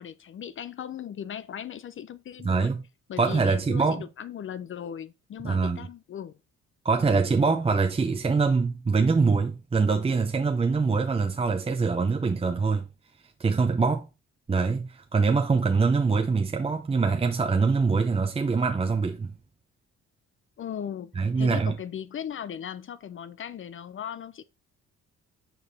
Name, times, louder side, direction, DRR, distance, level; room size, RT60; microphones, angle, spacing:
voice 1, 0.0-2.7 3.1-6.3 20.6-24.4, left 9 dB, 45° left, 0.5 m, -38 dB
voice 2, 2.4-2.9 3.2-4.1 5.4-5.9 6.8-12.9 13.4-14.1 14.5-19.3 21.2-21.8, right 4 dB, 20° right, 0.6 m, -24 dB
5.4 x 4.7 x 4.0 m
cardioid pair, 90°, 30 cm